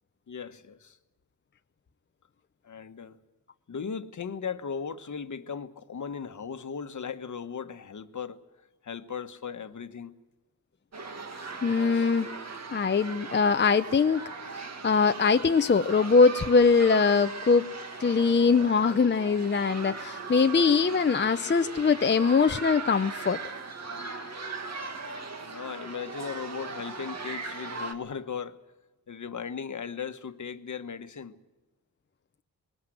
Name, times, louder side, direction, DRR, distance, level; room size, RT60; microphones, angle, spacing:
voice 1, 0.3-1.0 2.6-3.2 3.7-8.4 8.8-10.1 11.9-12.1 25.4-28.6 29.1-31.4, left 6 dB, 55° left, 1.2 m, -37 dB
sound 1, 10.9-27.9, right 3 dB, 45° right, 2.1 m, -39 dB
voice 2, 11.6-12.3 12.7-14.2 14.5-14.6 14.8-17.7 18.0-23.4, left 5 dB, 30° left, 0.6 m, -22 dB
21.5 x 19.0 x 7.8 m
wide cardioid pair, 85°, 36 cm